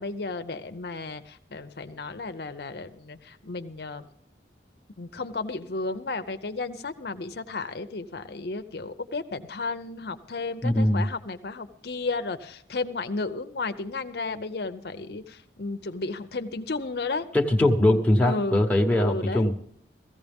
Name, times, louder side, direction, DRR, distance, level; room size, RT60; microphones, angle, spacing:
voice 1, 0.0-4.1 5.0-17.3 18.2-18.6 18.9-19.5, left 3 dB, 65° left, 8 dB, 0.7 m, -33 dB
voice 2, 10.6-11.1 17.3-19.6, left 1 dB, 10° left, 0 dB, 1.1 m, -21 dB
17.0 x 14.5 x 3.5 m, 0.68 s
head